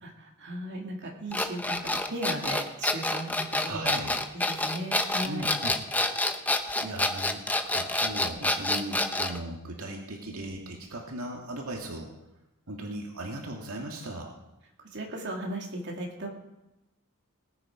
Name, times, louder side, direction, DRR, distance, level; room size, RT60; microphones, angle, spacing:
voice 1, 0.0-3.8 4.3-5.5 14.8-16.3, right 1 dB, 55° right, 0 dB, 2.5 m, -36 dB
sound 1, 1.3-9.4, left 2 dB, 5° left, 0.7 m, -28 dB
voice 2, 3.7-4.2 5.3-5.7 6.7-12.1 12.7-14.3, right 1 dB, 75° right, 0 dB, 2.2 m, -37 dB
19.0 x 9.0 x 5.1 m, 0.96 s
head